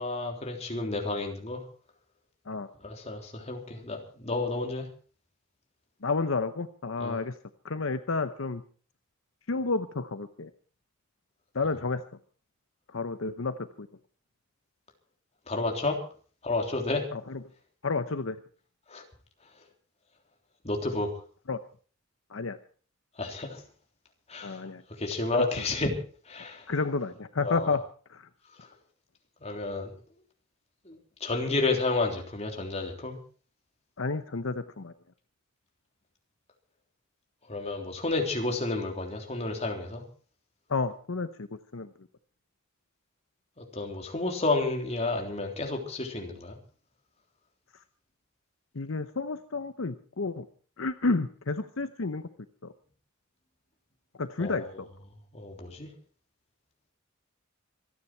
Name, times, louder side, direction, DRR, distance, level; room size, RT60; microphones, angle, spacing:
voice 1, 0.0-1.6 2.8-4.9 7.0-7.2 15.5-16.0 16.4-17.1 18.9-19.0 20.6-21.1 23.2-23.6 24.3-24.6 25.0-26.0 26.3-26.7 27.4-27.7 29.4-29.9 30.9-33.2 37.5-40.0 43.7-46.6 54.4-54.7 55.3-55.9, left 3 dB, 35° left, 2 dB, 3.5 m, -31 dB
voice 2, 6.0-7.4 7.6-8.6 9.5-10.5 11.5-12.0 12.9-13.9 17.1-17.4 17.8-18.4 21.5-21.6 22.3-22.6 24.4-24.8 26.7-27.8 28.1-28.3 34.0-34.9 40.7-41.5 41.7-41.9 48.7-50.4 50.8-52.3 52.6-52.7 54.2-54.9, left 3 dB, 75° left, 10 dB, 0.9 m, -31 dB
26.0 x 10.0 x 4.5 m, 0.41 s
head